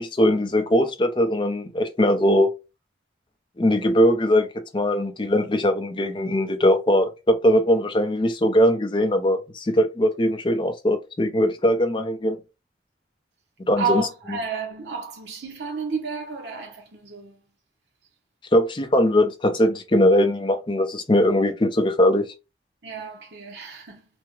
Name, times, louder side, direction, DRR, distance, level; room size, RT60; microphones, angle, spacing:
voice 1, 0.0-2.5 3.6-4.5 4.7-12.4 13.7-14.0 18.5-22.2, left 1 dB, 25° left, 0.5 m, -20 dB
voice 2, 13.8-17.4 22.8-24.0, right 4 dB, 70° right, 0.8 m, -31 dB
3.4 x 2.1 x 3.1 m
head